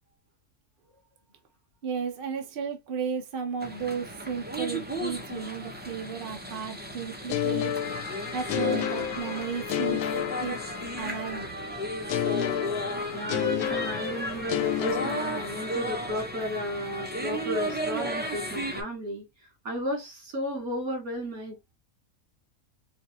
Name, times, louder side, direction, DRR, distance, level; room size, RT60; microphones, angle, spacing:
voice 1, 1.8-7.7 8.0-10.1 10.4-10.6 10.9-11.5, right 6 dB, 45° right, 0.8 m, -34 dB
sound 1, 3.6-18.8, right 1 dB, 10° right, 0.7 m, -34 dB
sound 2, 7.3-11.2 12.1-16.0, left 10 dB, 80° left, 1.0 m, -31 dB
voice 2, 13.1-19.3 19.6-21.7, equal, 75° right, 2.6 m, -34 dB
4.6 x 2.7 x 2.8 m
omnidirectional pair, 1.5 m